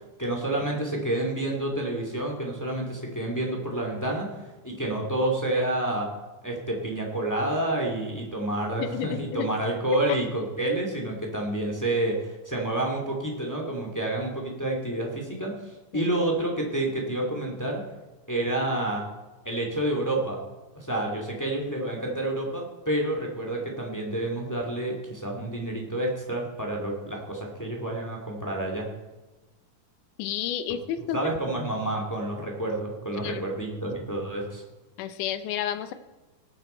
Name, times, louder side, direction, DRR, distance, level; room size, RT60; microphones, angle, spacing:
voice 1, 0.2-6.1 6.4-17.8 18.3-19.0 19.4-20.4 20.7-28.9 31.1-34.6, right 1 dB, 5° left, 0 dB, 1.8 m, -29 dB
voice 2, 8.8-9.5 15.9-16.1 30.2-31.2 33.2-33.4 35.0-35.9, left 10 dB, 75° left, 11 dB, 2.3 m, -31 dB
19.0 x 9.2 x 4.4 m, 1.2 s
omnidirectional pair, 3.8 m